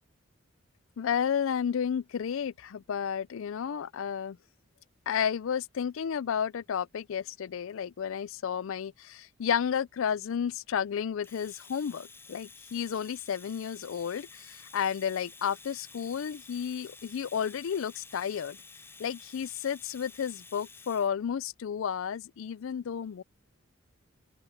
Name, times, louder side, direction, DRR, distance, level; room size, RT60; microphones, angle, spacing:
voice 1, 1.0-4.4 5.1-18.6 19.0-23.2, left 7 dB, 65° left, 0.4 m, -32 dB
Domestic sounds home sounds, 11.2-21.1, left 4 dB, 10° left, 0.5 m, -51 dB
open air
head